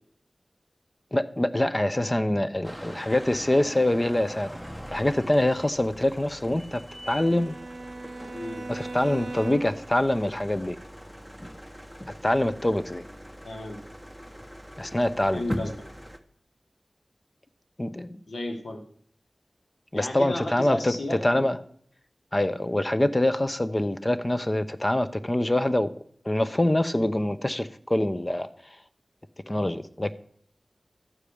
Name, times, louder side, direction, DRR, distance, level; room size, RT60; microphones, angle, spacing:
voice 1, 1.1-4.5 4.9-7.6 8.7-10.8 12.2-13.0 14.8-15.4 17.8-18.2 19.9-21.6 22.3-25.9 26.2-28.5 29.5-30.1, left 1 dB, 30° left, 12 dB, 0.8 m, -25 dB
sound 1, 2.6-16.2, equal, 5° left, 1.1 m, -41 dB
Bowed string instrument, 6.8-9.9, right 2 dB, 85° right, 0.7 m, -39 dB
voice 2, 8.3-8.6 13.4-13.8 15.3-15.7 18.3-18.8 19.9-21.5, left 1 dB, 90° left, 3 dB, 1.7 m, -33 dB
12.5 x 4.9 x 8.6 m, 0.63 s
cardioid pair, 40°, 0 cm